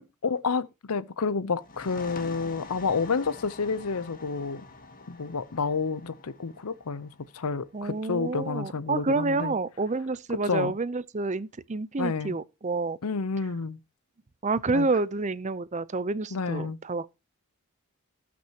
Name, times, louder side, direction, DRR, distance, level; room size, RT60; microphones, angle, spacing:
voice 1, 0.0-4.6 5.1-9.5 10.4-10.7 12.0-12.4 13.0-13.8 14.7-14.9 16.3-16.8, left 4 dB, 80° left, 0.7 m, -30 dB
sound 1, 1.6-9.0, left 3 dB, 40° left, 1.3 m, -46 dB
voice 2, 7.7-13.0 14.4-17.1, right 3 dB, 30° right, 0.6 m, -29 dB
18.5 x 6.1 x 2.9 m
head